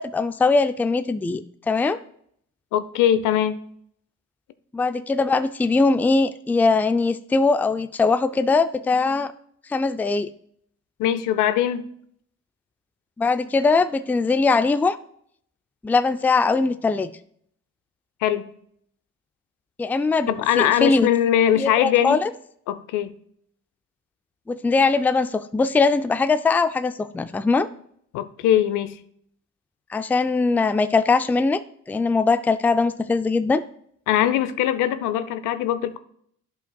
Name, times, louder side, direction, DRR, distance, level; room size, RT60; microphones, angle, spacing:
voice 1, 0.0-1.4 1.7-2.0 4.7-9.3 9.7-10.3 13.2-15.0 15.8-17.1 19.8-21.1 21.6-22.3 24.5-27.7 29.9-31.6 31.9-33.6, left 4 dB, 5° left, 11 dB, 0.3 m, -21 dB
voice 2, 2.7-3.6 11.0-11.9 18.2-18.4 20.3-22.2 22.7-23.1 28.1-29.0 34.1-36.0, left 11 dB, 85° left, 12 dB, 0.6 m, -21 dB
11.5 x 5.2 x 2.3 m, 0.66 s
cardioid pair, 80°, 31 cm